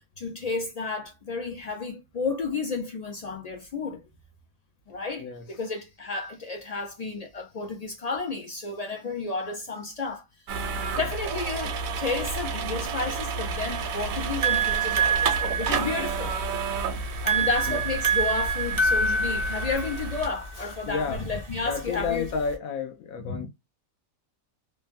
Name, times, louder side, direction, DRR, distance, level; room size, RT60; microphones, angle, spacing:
voice 1, 0.2-4.0 4.9-10.2 10.5-10.6 11.0-16.4 17.2-22.3 23.2-23.5, left 4 dB, 65° left, 0.3 m, -32 dB
sound 1, 10.5-20.3, right 4 dB, 85° right, 1.0 m, -31 dB
sound 2, 13.8-22.5, right 4 dB, 45° right, 0.4 m, -27 dB
voice 2, 20.9-21.3 21.6-23.5, left 5 dB, 85° left, 1.1 m, -31 dB
3.1 x 2.2 x 2.5 m
omnidirectional pair, 1.4 m